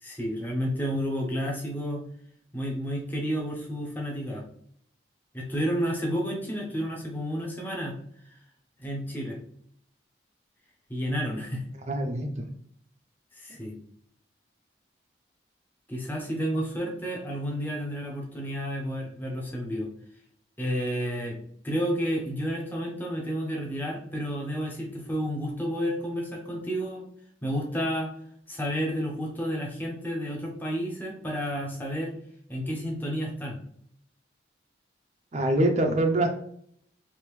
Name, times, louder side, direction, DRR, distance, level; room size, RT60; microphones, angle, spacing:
voice 1, 0.0-2.0 2.5-4.4 5.3-8.0 8.8-9.4 10.9-11.6 13.3-13.7 15.9-19.9 20.6-27.1 27.4-28.1 28.5-32.1 32.5-33.6, equal, 10° left, -2 dB, 0.6 m, -31 dB
voice 2, 11.9-12.5 35.3-36.3, right 1 dB, 35° right, 3 dB, 0.4 m, -24 dB
3.4 x 2.6 x 3.0 m, 0.65 s
head